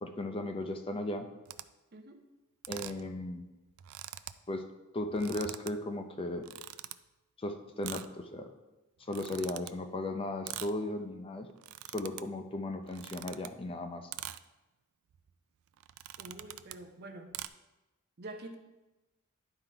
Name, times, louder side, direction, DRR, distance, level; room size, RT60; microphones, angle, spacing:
voice 1, 0.0-1.3 2.7-3.4 4.5-4.7 4.9-6.5 7.4-8.5 9.1-11.5 11.9-14.1, left 1 dB, 25° left, 6 dB, 0.5 m, -36 dB
sound 1, 1.5-1.6 2.6-3.1 3.4-3.5 3.7-4.4 5.0-5.7 6.4-6.9 7.8-8.1 9.0-9.7 10.5-10.8 11.5-12.2 12.8-13.5 14.1-14.4 15.1-15.3 15.8-16.8 17.3-17.5, right 13 dB, 70° right, 0.3 m, -43 dB
voice 2, 1.9-2.2 16.2-17.3 18.2-18.6, right 2 dB, 50° right, 5 dB, 0.7 m, -46 dB
11.0 x 3.8 x 4.5 m, 1.1 s
head